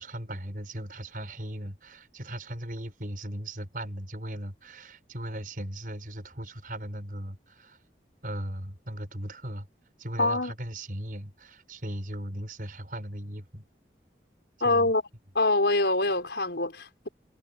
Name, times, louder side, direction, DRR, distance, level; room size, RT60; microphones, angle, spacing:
voice 1, 0.0-7.8 8.2-9.7 10.0-13.6 14.6-14.9, right 1 dB, 50° right, 7.2 m, -38 dB
voice 2, 10.2-10.5 14.6-15.0 15.3-17.1, left 2 dB, 75° left, 4.6 m, -25 dB
head